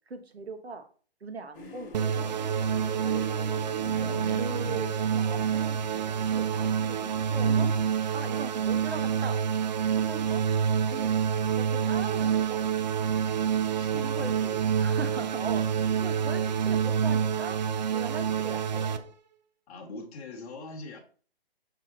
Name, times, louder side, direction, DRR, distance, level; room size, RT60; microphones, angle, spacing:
voice 1, 0.1-0.8 1.2-2.3 4.4-7.7 8.1-9.4 9.9-10.4 10.9-11.1 11.6-12.6 14.0-15.7 15.9-17.6 17.9-19.1, right 4 dB, 80° right, 8 dB, 1.2 m, -40 dB
sound 1, 1.5-7.7, left 3 dB, 60° left, 1.8 m, -45 dB
sound 2, 1.9-19.0, right 8 dB, 45° right, 0.5 m, -27 dB
voice 2, 3.8-4.8 13.7-14.6 15.8-15.9 19.7-21.0, left 2 dB, 35° left, -2 dB, 1.7 m, -41 dB
6.1 x 4.3 x 3.8 m, 0.41 s
figure-of-eight pair, 140°, 31 cm